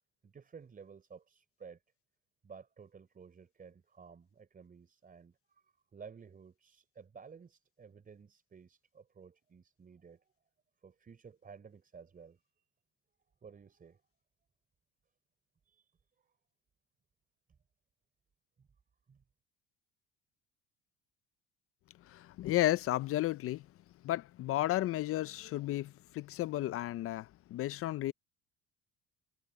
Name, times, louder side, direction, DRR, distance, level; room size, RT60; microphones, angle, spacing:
voice 1, 0.2-1.8 2.4-5.6 5.9-10.2 10.8-12.4 13.4-14.0 15.7-15.9 16.2-16.3 18.6-18.7 19.1-19.2, right 6 dB, 25° right, 4.4 m, -54 dB
voice 2, 22.1-23.6 24.0-28.1, left 15 dB, 45° left, 0.4 m, -33 dB
cardioid pair, 130°, 32 cm